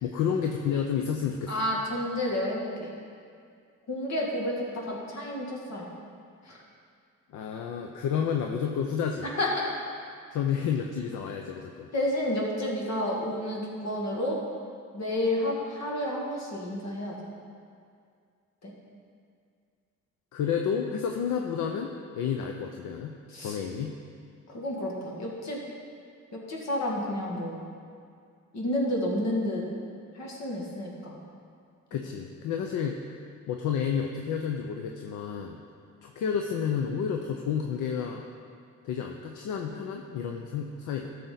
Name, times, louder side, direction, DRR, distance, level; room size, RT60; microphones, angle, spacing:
voice 1, 0.0-1.5 7.3-9.3 10.3-11.9 20.3-23.9 31.9-33.2 33.5-35.6 36.0-38.3 38.8-41.1, left 7 dB, 80° left, 3 dB, 0.7 m, -30 dB
voice 2, 1.5-2.9 3.9-5.9 6.5-6.6 9.4-9.7 11.9-14.4 14.9-17.1 18.6-18.7 23.3-23.6 24.5-25.6 26.3-27.7 28.5-29.6 30.1-31.2, left 1 dB, 60° left, -2 dB, 2.3 m, -30 dB
13.5 x 6.8 x 4.0 m, 2.3 s
cardioid pair, 90°, 30 cm